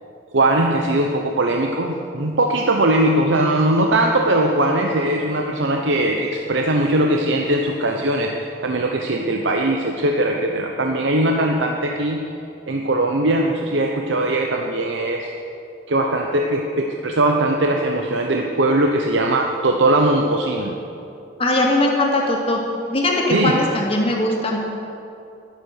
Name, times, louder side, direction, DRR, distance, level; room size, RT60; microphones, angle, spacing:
voice 1, 0.3-12.3 12.7-15.3 15.9-20.8 23.3-23.6, right 1 dB, 80° right, 2 dB, 0.9 m, -20 dB
voice 2, 21.4-22.6 22.9-24.6, left 1 dB, 30° left, -1 dB, 2.1 m, -20 dB
12.5 x 11.5 x 6.5 m, 2.7 s
head